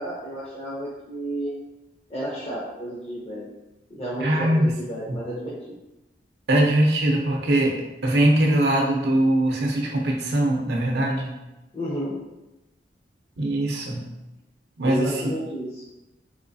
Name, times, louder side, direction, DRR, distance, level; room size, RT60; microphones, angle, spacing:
voice 1, 0.0-1.5 2.1-3.5 3.9-5.7 11.7-12.1 14.8-15.8, right 1 dB, 35° left, -7 dB, 0.7 m, -31 dB
voice 2, 4.2-4.7 5.1-5.2 6.5-11.4 13.4-14.1 14.8-15.2, right 1 dB, 65° right, 0 dB, 0.6 m, -22 dB
3.6 x 3.0 x 2.6 m, 0.98 s
head